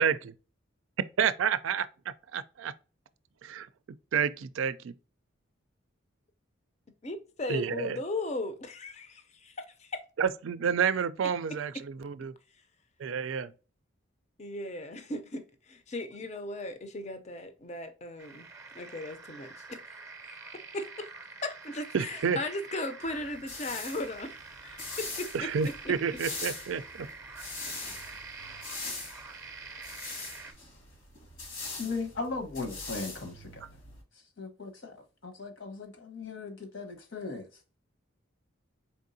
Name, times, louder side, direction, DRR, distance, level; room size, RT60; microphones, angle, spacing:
voice 1, 1.2-1.9 2.3-2.7 3.4-3.7 4.1-4.9 7.5-8.0 10.2-12.3 13.0-13.5 21.9-22.4 25.3-27.1, right 7 dB, 75° right, 0.4 m, -29 dB
voice 2, 7.0-10.0 14.4-18.5 18.7-19.5 20.2-20.4 20.7-21.1 21.4-25.5 25.8-25.9, left 2 dB, 35° left, 0.6 m, -37 dB
sound 1, 18.2-30.5, right 4 dB, 15° right, 0.6 m, -46 dB
sound 2, 23.0-34.0, left 3 dB, 85° left, 1.9 m, -42 dB
voice 3, 31.8-33.6 34.4-37.5, left 3 dB, 70° left, 1.1 m, -38 dB
4.5 x 3.6 x 2.6 m
head